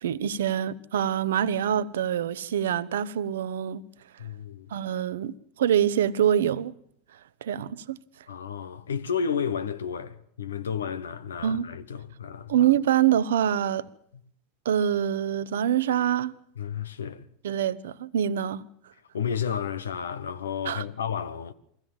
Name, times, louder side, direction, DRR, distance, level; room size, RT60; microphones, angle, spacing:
voice 1, 0.0-3.8 4.7-6.7 7.4-8.0 11.4-11.7 12.5-13.9 14.6-16.3 17.4-18.6 20.7-20.8, right 10 dB, 70° right, 0.7 m, -25 dB
voice 2, 4.2-4.7 8.3-12.6 16.6-17.3 19.1-21.5, left 7 dB, 80° left, 1.0 m, -32 dB
23.5 x 15.5 x 7.3 m
figure-of-eight pair, 85°, 0 cm